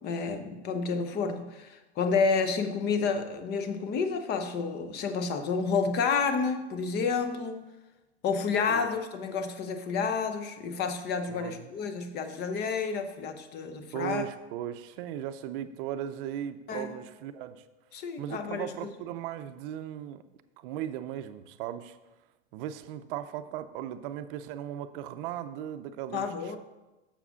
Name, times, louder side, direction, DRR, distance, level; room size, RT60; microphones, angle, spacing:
voice 1, 0.0-7.6 8.2-14.2 16.7-16.9 17.9-18.9 26.1-26.6, left 5 dB, 30° left, 8 dB, 0.7 m, -30 dB
voice 2, 11.3-11.7 13.9-17.6 18.2-20.2 20.6-22.0 22.5-26.6, right 11 dB, 55° right, 11 dB, 0.6 m, -37 dB
7.1 x 4.8 x 5.6 m, 1.1 s
supercardioid pair, 135°, 33 cm